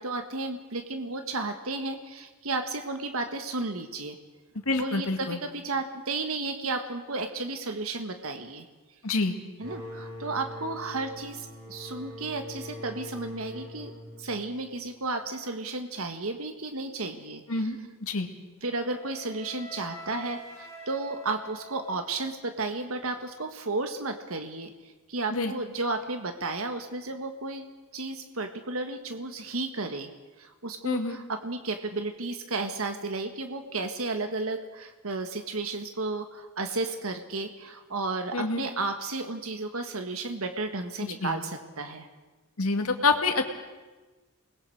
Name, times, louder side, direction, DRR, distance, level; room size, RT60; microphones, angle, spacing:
voice 1, 0.0-4.2 4.8-8.6 9.6-13.9 14.2-17.7 18.6-24.7 25.1-27.6 27.9-30.1 30.4-42.1, right 3 dB, 80° right, 7 dB, 1.5 m, -33 dB
voice 2, 4.7-5.4 9.0-9.3 17.5-18.3 25.3-25.5 30.8-31.2 38.3-38.6 41.2-41.4 42.6-43.6, left 3 dB, 85° left, 5 dB, 2.0 m, -27 dB
sound 1, 9.6-15.0, equal, 40° right, 5.4 m, -43 dB
Wind instrument woodwind instrument, 18.6-22.7, equal, 15° left, 4.2 m, -46 dB
29.0 x 20.5 x 4.8 m, 1.2 s
head